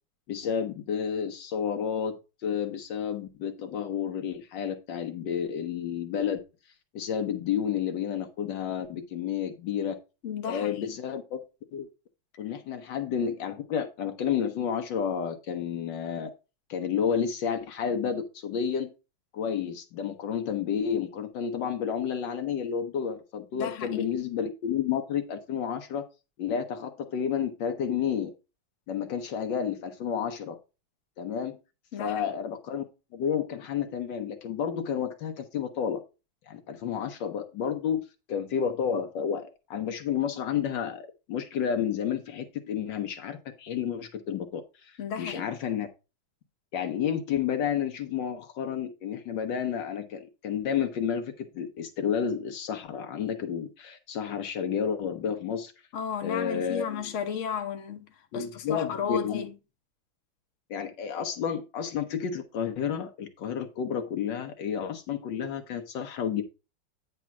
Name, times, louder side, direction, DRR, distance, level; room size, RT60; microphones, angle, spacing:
voice 1, 0.3-6.4 6.9-10.0 10.5-11.4 11.7-11.9 12.4-16.3 16.7-18.9 19.3-26.0 26.4-28.3 28.9-30.6 31.2-31.6 32.0-32.8 33.1-36.0 36.5-45.9 46.7-55.7 56.2-57.0 58.3-59.5 60.7-66.4, left 8 dB, 70° left, 1.3 m, -31 dB
voice 2, 10.2-11.0 23.5-24.2 31.9-32.3 45.0-45.5 55.9-59.5, left 7 dB, 45° left, 1.1 m, -34 dB
9.3 x 3.3 x 5.8 m
omnidirectional pair, 2.2 m